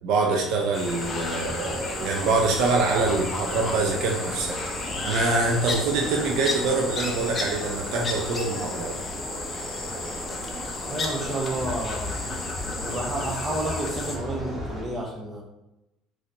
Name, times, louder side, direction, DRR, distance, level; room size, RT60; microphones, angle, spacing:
voice 1, 0.0-4.6 5.0-9.0, right 3 dB, 60° right, 1 dB, 0.6 m, -25 dB
sound 1, 0.7-14.2, left 3 dB, 35° left, 0.7 m, -33 dB
sound 2, 0.8-14.8, equal, 15° right, 1.4 m, -36 dB
voice 2, 10.9-12.2 12.8-15.4, right 1 dB, 30° right, -1 dB, 1.1 m, -30 dB
4.2 x 3.1 x 2.6 m, 0.94 s
hypercardioid pair, 60°, 0 cm